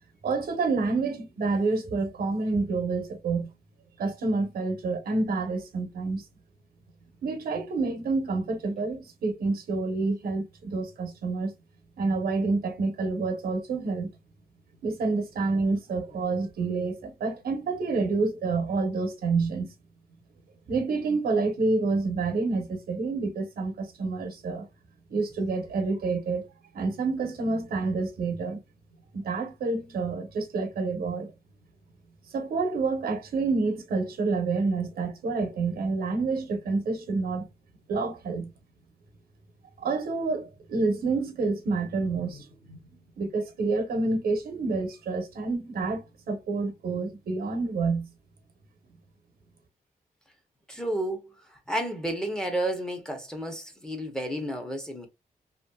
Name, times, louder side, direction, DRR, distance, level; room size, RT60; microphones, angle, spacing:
voice 1, 0.2-3.5 4.0-6.2 7.2-11.5 12.0-14.1 14.8-19.7 20.7-24.7 25.1-26.5 26.7-28.6 29.1-31.3 32.3-37.5 37.9-38.5 39.8-42.8 43.2-48.1, right 3 dB, 85° right, 0.9 m, -28 dB
voice 2, 50.7-51.3 51.7-55.1, right 1 dB, 5° left, 0.6 m, -31 dB
2.9 x 2.6 x 2.2 m
wide cardioid pair, 175°, 15 cm